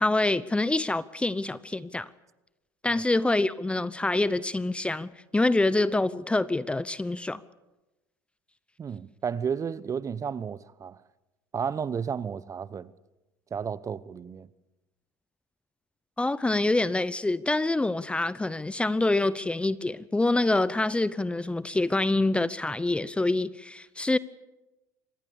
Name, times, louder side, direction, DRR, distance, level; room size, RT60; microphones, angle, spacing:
voice 1, 0.0-2.1 2.8-7.4 16.2-24.2, left 2 dB, 10° left, 0.8 m, -26 dB
voice 2, 8.8-11.0 11.5-12.9 13.5-14.5, right 7 dB, 30° right, 0.9 m, -32 dB
25.0 x 19.5 x 7.0 m
hypercardioid pair, 80°, 10 cm